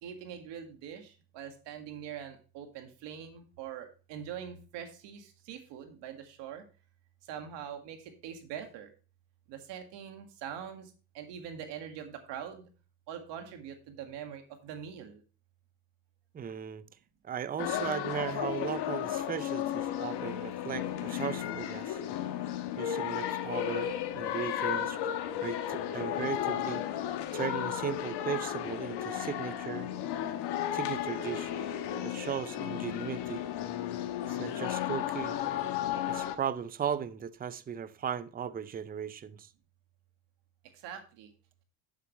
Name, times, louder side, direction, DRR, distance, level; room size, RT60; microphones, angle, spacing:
voice 1, 0.0-6.6 7.2-8.9 9.5-12.7 13.1-15.2 40.7-41.3, right 8 dB, 85° right, 1.9 m, -43 dB
voice 2, 16.3-16.8 17.2-22.0 22.8-25.1 25.4-26.8 27.3-29.9 30.7-31.5 32.0-33.4 34.3-35.4 36.1-39.5, right 8 dB, 20° right, 0.5 m, -37 dB
sound 1, 17.6-36.4, left 10 dB, 70° left, 1.3 m, -34 dB
10.0 x 7.5 x 3.1 m
cardioid pair, 120°, 42 cm